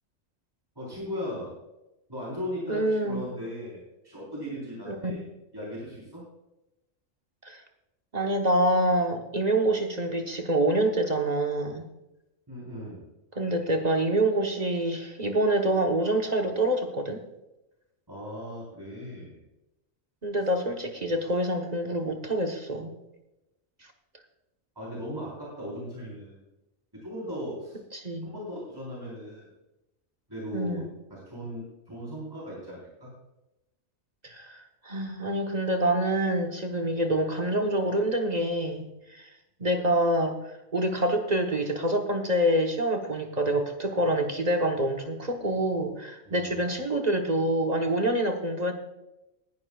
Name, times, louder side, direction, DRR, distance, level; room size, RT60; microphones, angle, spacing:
voice 1, 0.8-1.5 2.1-5.2 5.5-6.2 12.5-13.1 18.1-19.4 24.8-26.4 26.9-27.8 28.2-29.5 30.3-33.1 46.3-46.6, equal, 20° right, -5 dB, 4.0 m, -37 dB
voice 2, 2.7-3.3 4.9-5.2 7.4-7.6 8.1-11.8 13.3-17.2 20.2-23.0 27.9-28.3 30.5-30.9 34.2-39.3 39.6-48.7, right 1 dB, 35° right, 3 dB, 1.2 m, -26 dB
19.5 x 11.0 x 2.4 m, 0.94 s
omnidirectional pair, 1.2 m